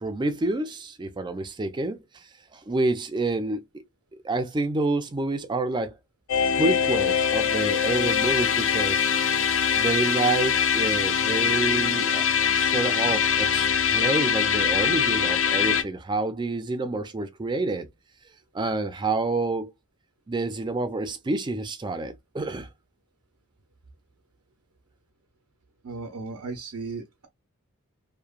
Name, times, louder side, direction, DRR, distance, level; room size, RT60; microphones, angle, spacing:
voice 1, 0.0-2.2 2.5-3.8 4.2-5.9 6.6-9.1 9.8-12.3 12.6-17.9 18.5-19.7 20.3-22.7, right 2 dB, 20° right, 0.4 m, -28 dB
sound 1, 6.3-15.8, left 7 dB, 60° left, 0.5 m, -23 dB
voice 2, 25.8-27.3, right 4 dB, 90° right, 0.6 m, -36 dB
2.9 x 2.1 x 2.4 m
head